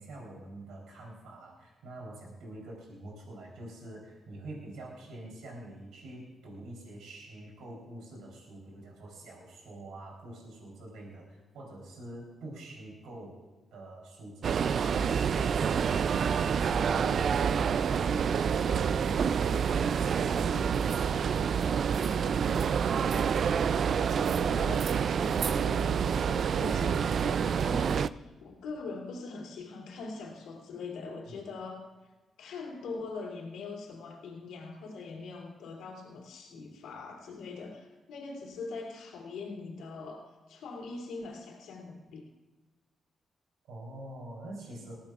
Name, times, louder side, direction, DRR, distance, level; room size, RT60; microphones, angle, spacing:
voice 1, 0.0-13.4 13.7-17.3 17.5-22.1 31.3-31.4 43.6-44.9, right 1 dB, 85° right, -2 dB, 3.7 m, -46 dB
sound 1, 14.4-28.1, right 7 dB, 65° right, 0.3 m, -27 dB
voice 2, 23.9-31.9 32.4-42.3, left 3 dB, 85° left, -1 dB, 3.0 m, -42 dB
20.0 x 15.5 x 2.5 m, 1.2 s
cardioid pair, 60°, 0 cm